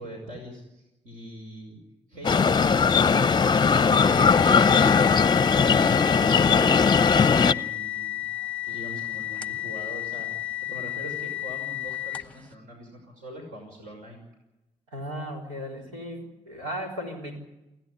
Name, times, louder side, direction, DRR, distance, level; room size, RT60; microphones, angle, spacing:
voice 1, 0.0-1.8 2.1-3.1 5.5-6.9 7.5-8.2 8.6-14.2, equal, 65° right, 1 dB, 5.9 m, -42 dB
sound 1, 2.2-7.5, left 5 dB, 30° left, 0.7 m, -19 dB
sound 2, 3.9-12.5, left 14 dB, 10° left, 1.1 m, -33 dB
voice 2, 14.9-17.4, equal, 85° right, 2 dB, 3.9 m, -36 dB
29.0 x 11.0 x 9.9 m, 0.94 s
hypercardioid pair, 45°, 15 cm